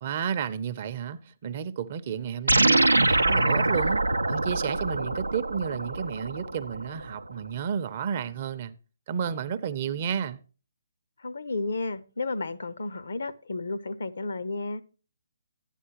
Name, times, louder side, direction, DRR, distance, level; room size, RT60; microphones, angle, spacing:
voice 1, 0.0-4.0 4.3-8.7 9.1-10.4, right 7 dB, 40° right, 0.6 m, -32 dB
sound 1, 2.5-7.1, right 2 dB, 90° right, 0.5 m, -24 dB
voice 2, 11.2-14.8, left 3 dB, 65° left, 0.7 m, -32 dB
11.0 x 10.0 x 2.9 m
figure-of-eight pair, 140°, 0 cm